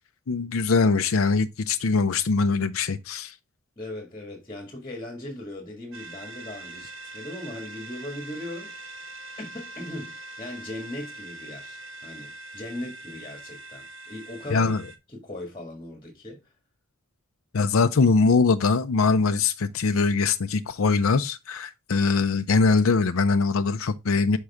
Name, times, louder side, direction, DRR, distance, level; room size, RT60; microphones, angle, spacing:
voice 1, 0.3-3.3 14.5-14.8 17.5-24.4, left 4 dB, 70° left, 0.5 m, -22 dB
voice 2, 3.8-8.8 9.4-14.8 15.1-16.5, left 1 dB, 20° left, 1.8 m, -38 dB
sound 1, 5.9-15.0, right 2 dB, 65° right, 1.1 m, -42 dB
6.3 x 5.4 x 3.5 m
head